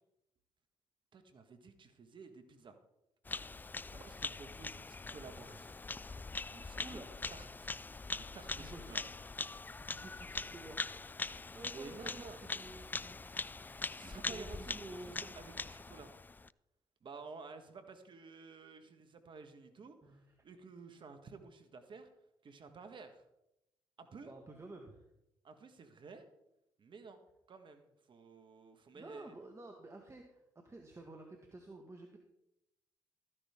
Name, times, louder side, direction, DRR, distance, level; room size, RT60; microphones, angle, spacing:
voice 1, 1.1-2.8 3.9-5.8 6.5-7.0 7.3-7.7 8.1-9.0 11.7-12.4 13.9-16.1 17.0-22.1 22.4-23.2 24.0-24.3 25.4-26.2 26.8-27.2 27.5-29.3, right 4 dB, 50° right, 8 dB, 1.6 m, -52 dB
Bird vocalization bird call bird song, 3.3-16.5, left 3 dB, 15° left, 0.3 m, -43 dB
voice 2, 6.8-7.4 8.5-9.1 9.8-15.3 20.0-20.4 22.7-22.8 24.2-25.1 28.9-32.2, right 2 dB, 25° right, 2 dB, 1.8 m, -52 dB
14.0 x 10.0 x 3.7 m, 0.85 s
hypercardioid pair, 55°, 11 cm